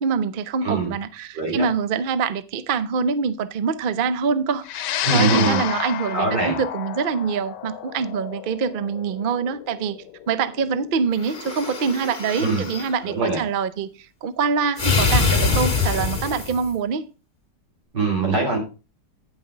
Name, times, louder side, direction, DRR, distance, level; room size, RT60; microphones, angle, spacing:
voice 1, 0.0-4.8 5.1-10.0 10.3-13.9 14.2-17.0, right 6 dB, 65° right, 0.5 m, -25 dB
voice 2, 0.6-0.9 1.3-1.6 5.0-5.6 6.1-6.6 12.4-12.7 13.0-13.4 17.9-18.6, right 3 dB, 80° right, 4.0 m, -22 dB
sound 1, 4.7-13.2, left 11 dB, 80° left, 1.3 m, -31 dB
sound 2, 11.2-12.9 14.8-16.7, left 4 dB, 30° left, 1.6 m, -23 dB
9.9 x 5.7 x 5.1 m
omnidirectional pair, 1.8 m